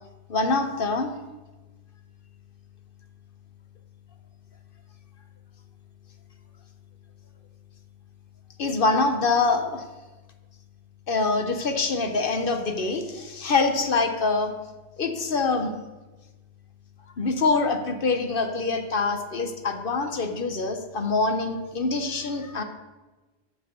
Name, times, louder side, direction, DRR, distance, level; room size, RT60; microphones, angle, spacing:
voice 1, 0.3-1.1 8.6-9.8 11.1-14.5 15.0-15.7 17.2-22.6, left 3 dB, 55° left, 6 dB, 1.0 m, -25 dB
7.4 x 7.1 x 6.7 m, 1.2 s
omnidirectional pair, 1.1 m